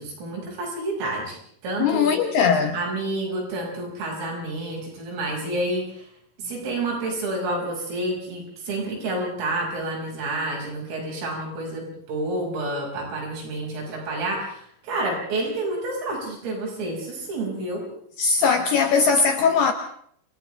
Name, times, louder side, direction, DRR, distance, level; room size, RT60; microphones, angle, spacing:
voice 1, 0.0-2.2 2.7-6.1 6.4-17.9, right 2 dB, 85° right, 8.7 m, -29 dB
voice 2, 1.8-2.8 18.2-19.7, left 5 dB, 70° left, 2.8 m, -20 dB
30.0 x 28.0 x 3.5 m
omnidirectional pair, 5.7 m